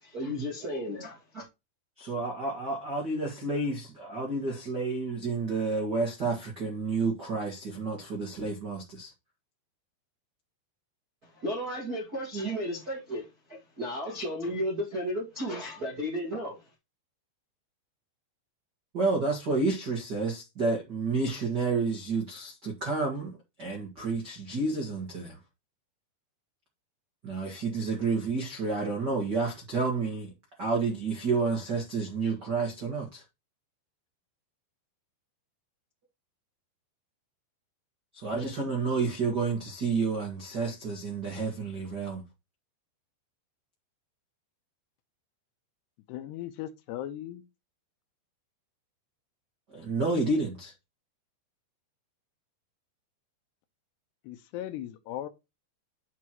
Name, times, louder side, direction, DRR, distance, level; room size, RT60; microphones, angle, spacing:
voice 1, 0.0-1.4 11.3-16.6, equal, 50° right, 1.0 m, -34 dB
voice 2, 2.0-9.1 18.9-23.3 23.6-25.4 27.2-30.3 30.6-33.2 38.1-42.2 49.7-50.7, right 3 dB, 75° right, 0.9 m, -30 dB
voice 3, 46.1-47.4 54.2-55.3, left 12 dB, 80° left, 2.7 m, -38 dB
8.3 x 6.2 x 3.0 m
omnidirectional pair, 5.2 m